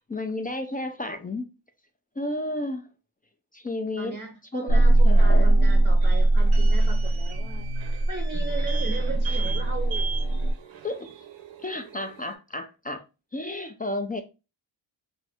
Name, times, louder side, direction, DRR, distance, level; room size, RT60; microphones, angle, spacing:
voice 1, 0.1-1.4 2.2-2.8 3.5-4.2 4.5-5.6 10.8-11.1 11.6-13.0 13.3-14.2, left 2 dB, 20° left, 0.3 m, -32 dB
voice 2, 4.0-7.7 8.1-10.1, right 4 dB, 25° right, 0.6 m, -37 dB
sound 1, 4.7-10.5, right 2 dB, 65° left, 0.7 m, -20 dB
sound 2, 5.1-12.3, right 6 dB, 75° right, 0.7 m, -40 dB
2.6 x 2.6 x 3.3 m
cardioid pair, 65°, 47 cm